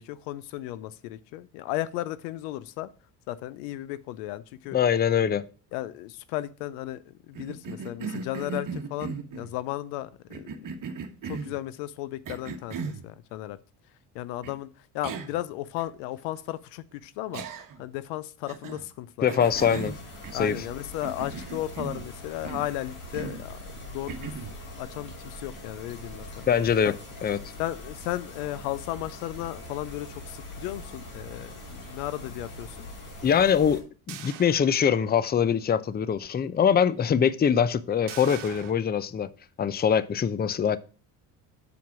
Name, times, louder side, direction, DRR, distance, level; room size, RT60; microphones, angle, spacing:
voice 1, 0.0-2.9 3.3-4.8 5.7-10.7 11.2-13.6 14.1-17.4 17.8-19.5 20.3-26.5 26.8-27.0 27.6-32.8, left 15 dB, 90° left, 0.7 m, -35 dB
voice 2, 4.7-5.4 19.2-20.0 20.3-20.6 26.5-26.9 27.2-27.4 33.2-39.3 39.6-40.8, left 7 dB, 20° left, 0.5 m, -23 dB
Cough, 7.3-9.5 10.3-11.6 12.2-13.0 14.4-14.5 15.0-15.4 15.8-15.9 17.3-17.9 18.5-18.9 19.3-20.7 21.0-22.1 22.4-22.7 23.1-23.5 24.1-24.6, right 5 dB, 40° right, 1.3 m, -37 dB
sound 1, 19.4-33.8, left 1 dB, 70° left, 3.4 m, -42 dB
sound 2, 34.1-35.4 35.8-35.9 38.1-38.7, right 12 dB, 65° right, 1.2 m, -43 dB
7.2 x 4.7 x 5.8 m
supercardioid pair, 80°, 47 cm